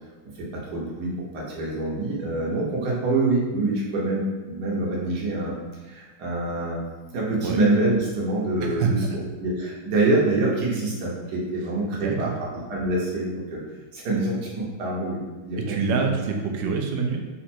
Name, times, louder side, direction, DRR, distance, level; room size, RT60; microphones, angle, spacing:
voice 1, 0.4-5.6 5.8-6.8 7.1-13.6 13.9-16.0, right 2 dB, 60° right, -4 dB, 1.5 m, -26 dB
voice 2, 8.6-8.9 11.9-12.4 15.7-17.2, right 5 dB, 80° right, 3 dB, 1.3 m, -26 dB
4.3 x 2.5 x 4.3 m, 1.3 s
omnidirectional pair, 2.0 m